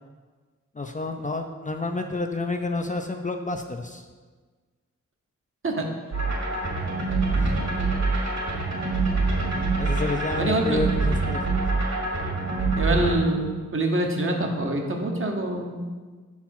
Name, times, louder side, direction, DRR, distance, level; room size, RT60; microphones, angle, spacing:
voice 1, 0.8-4.1 7.3-7.6 9.8-11.4 12.4-12.5, left 2 dB, 25° left, 4 dB, 0.5 m, -30 dB
sound 1, 6.1-13.2, right 3 dB, 60° right, 2.2 m, -25 dB
voice 2, 10.4-10.8 12.8-15.9, right 1 dB, 45° right, 2 dB, 1.0 m, -25 dB
5.7 x 4.4 x 5.8 m, 1.4 s
wide cardioid pair, 85°, 29 cm